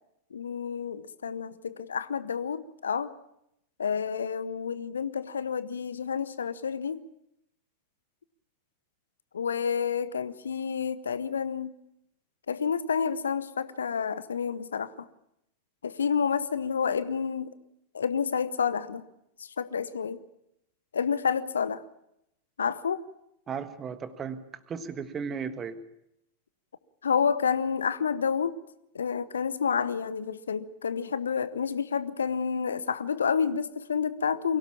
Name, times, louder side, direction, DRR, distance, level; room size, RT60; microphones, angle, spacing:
voice 1, 0.3-3.1 3.8-7.0 9.3-11.7 12.5-15.1 15.8-17.5 17.9-19.0 19.4-20.2 20.9-21.8 22.6-23.0 27.0-28.6 28.9-34.6, left 6 dB, 70° left, 0.9 m, -29 dB
voice 2, 23.5-25.8, right 6 dB, 25° right, 1.5 m, -36 dB
23.0 x 17.0 x 7.3 m
figure-of-eight pair, 90°, 0 cm